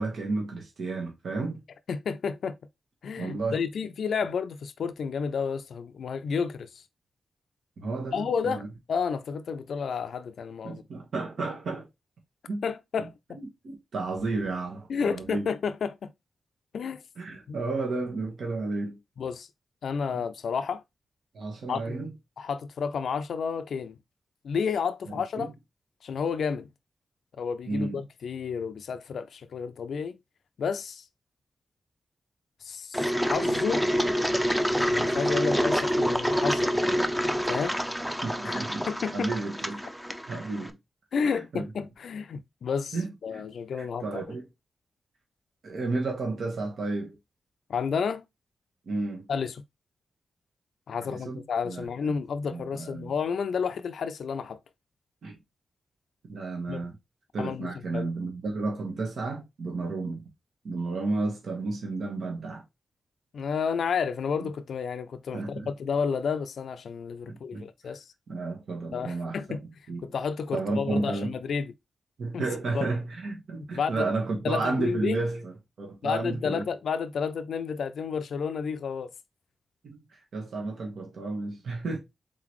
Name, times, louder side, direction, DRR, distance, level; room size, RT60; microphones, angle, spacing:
voice 1, 0.0-1.6 3.2-3.6 7.8-8.7 10.6-11.9 12.5-12.6 13.0-15.5 17.2-19.0 20.1-20.2 21.3-22.1 25.4-25.5 27.6-28.0 36.9-37.1 38.2-38.9 39.1-39.8 40.3-40.8 41.2-41.6 42.9-43.4 43.8-44.5 45.6-47.2 48.9-49.3 51.0-51.4 51.6-52.1 52.5-53.1 55.2-55.3 56.3-56.9 57.3-60.2 60.6-62.6 64.4-64.5 65.3-65.7 67.3-67.9 68.3-70.1 70.5-71.3 72.2-75.5 75.8-76.6 79.8-82.0, right 3 dB, 70° right, 1.3 m, -32 dB
voice 2, 1.9-2.5 3.0-6.8 8.1-8.6 8.9-10.8 12.6-13.4 14.9-16.1 16.7-17.0 17.5-17.6 19.2-19.5 19.8-20.8 21.7-22.0 22.4-24.0 24.4-25.5 26.0-26.7 27.4-30.2 30.6-31.0 32.6-33.9 34.8-36.7 37.4-37.8 38.4-38.5 38.9-39.3 41.1-43.0 43.2-44.1 47.7-48.2 49.3-49.6 50.9-54.6 56.7-56.8 57.4-58.1 63.3-68.1 68.9-69.6 70.0-71.7 72.3-72.4 72.7-72.9 73.7-74.0 74.4-75.2 76.0-79.1, left 6 dB, 80° left, 0.4 m, -31 dB
Engine, 32.9-40.7, equal, 5° right, 0.5 m, -27 dB
3.9 x 3.8 x 3.1 m
wide cardioid pair, 115°, 0 cm